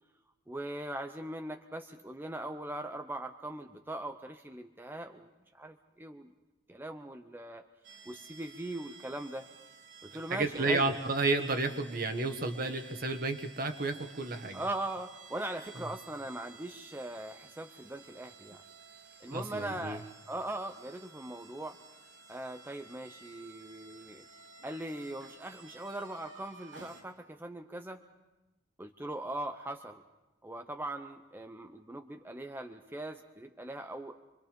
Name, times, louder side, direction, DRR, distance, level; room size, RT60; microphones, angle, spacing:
voice 1, 0.5-5.3 5.5-6.3 6.7-7.7 8.1-9.5 10.0-10.9 14.5-18.6 19.2-21.8 22.3-24.2 24.6-28.0 28.8-30.0 30.4-34.2, right 1 dB, 10° right, 5 dB, 0.7 m, -40 dB
sound 1, 7.8-27.0, right 4 dB, 80° right, 3.9 m, -54 dB
voice 2, 10.3-14.6 19.3-20.0, right 3 dB, 50° right, 6 dB, 1.6 m, -31 dB
27.0 x 22.5 x 5.3 m, 1.1 s
head